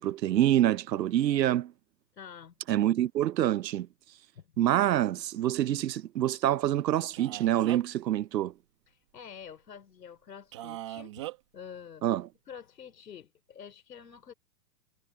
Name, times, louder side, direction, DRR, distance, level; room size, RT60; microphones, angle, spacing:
voice 1, 0.0-1.7 2.7-3.9 4.6-8.5 12.0-12.3, right 12 dB, 90° right, 0.8 m, -26 dB
voice 2, 2.1-2.5 4.3-4.5 5.7-5.8 8.9-11.3 11.5-12.0 12.5-14.3, left 7 dB, 80° left, 4.8 m, -47 dB
Male speech man speaking, 7.1-8.0 10.5-11.4, right 15 dB, 20° right, 1.0 m, -39 dB
hypercardioid pair, 175°, 49 cm